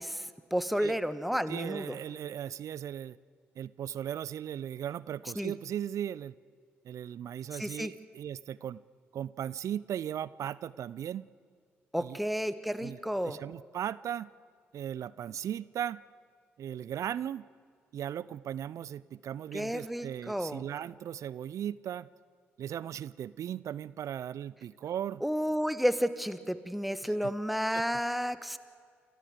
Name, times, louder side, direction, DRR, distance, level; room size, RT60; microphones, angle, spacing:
voice 1, 0.0-2.0 5.4-5.5 7.5-7.9 11.9-13.4 19.5-20.6 25.2-28.6, equal, ahead, 13 dB, 1.3 m, -31 dB
voice 2, 1.5-3.2 3.6-6.3 6.8-8.8 9.1-11.3 12.0-12.2 12.8-14.3 14.7-16.0 16.6-17.5 17.9-22.1 22.6-25.2 27.2-27.3 27.7-27.8, right 10 dB, 60° right, 20 dB, 0.4 m, -37 dB
28.5 x 13.5 x 8.0 m, 2.1 s
hypercardioid pair, 45°, 6 cm